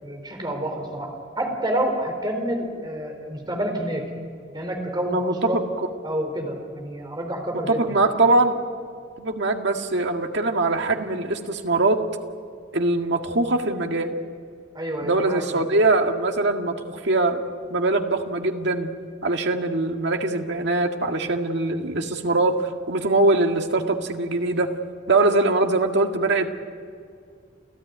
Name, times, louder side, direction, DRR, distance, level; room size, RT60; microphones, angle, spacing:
voice 1, 0.0-4.1 4.5-5.6 6.0-8.0 14.7-15.6, right 1 dB, 25° right, 3 dB, 4.2 m, -28 dB
voice 2, 5.1-5.9 7.5-8.6 9.2-12.0 12.7-14.2 15.0-17.4 17.7-18.9 19.2-24.7 25.1-26.6, right 2 dB, 65° right, 4 dB, 1.9 m, -22 dB
29.0 x 15.5 x 9.4 m, 2.2 s
head